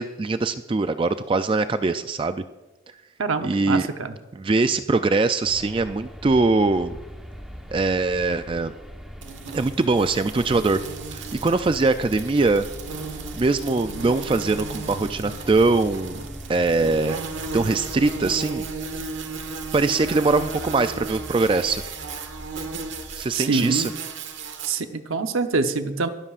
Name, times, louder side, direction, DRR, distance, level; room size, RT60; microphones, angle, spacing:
voice 1, 0.0-2.4 3.4-3.9 4.3-7.0 7.7-8.7 9.5-10.8 11.1-12.7 13.3-16.2 16.5-17.2 17.5-18.7 19.7-21.8 23.1-23.9, right 3 dB, 25° right, 10 dB, 0.3 m, -22 dB
voice 2, 3.2-4.1 23.3-23.9 24.6-26.1, right 4 dB, 80° right, 8 dB, 0.8 m, -25 dB
sound 1, 5.4-23.4, equal, ahead, 1.1 m, -41 dB
sound 2, 9.2-24.7, right 4 dB, 65° right, 1.5 m, -35 dB
23.5 x 13.0 x 2.5 m, 1.1 s
head